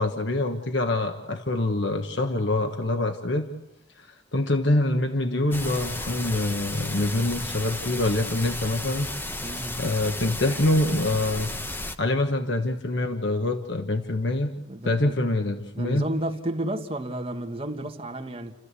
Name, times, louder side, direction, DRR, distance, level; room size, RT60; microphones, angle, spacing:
voice 1, 0.0-3.5 4.0-9.1 9.8-11.5 12.0-14.5 14.8-16.1, left 2 dB, 65° left, 1.3 m, -25 dB
sound 1, 5.5-12.0, left 1 dB, 10° left, 1.0 m, -34 dB
voice 2, 9.4-9.8 14.7-15.2 15.7-18.5, right 1 dB, 30° right, 1.8 m, -32 dB
30.0 x 14.5 x 8.4 m
head